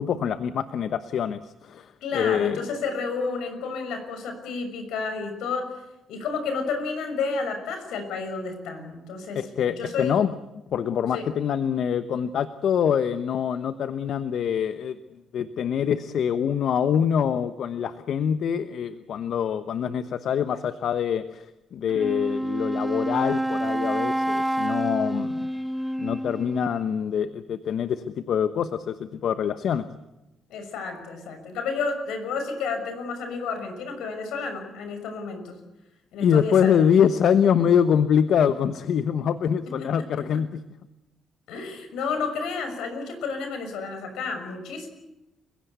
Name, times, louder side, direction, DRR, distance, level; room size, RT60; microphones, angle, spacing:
voice 1, 0.0-2.6 9.3-10.3 10.7-15.0 15.3-21.5 21.7-25.5 26.0-29.9 36.2-40.6, left 8 dB, 65° left, 11 dB, 1.0 m, -24 dB
voice 2, 2.0-5.7 6.1-10.2 11.1-11.3 30.5-35.6 36.1-36.9 39.8-39.9 41.5-44.9, left 4 dB, 85° left, 7 dB, 6.1 m, -31 dB
Wind instrument woodwind instrument, 21.9-26.8, right 1 dB, 5° right, 0.8 m, -28 dB
30.0 x 16.5 x 8.2 m, 0.96 s
cardioid pair, 90°, 0 cm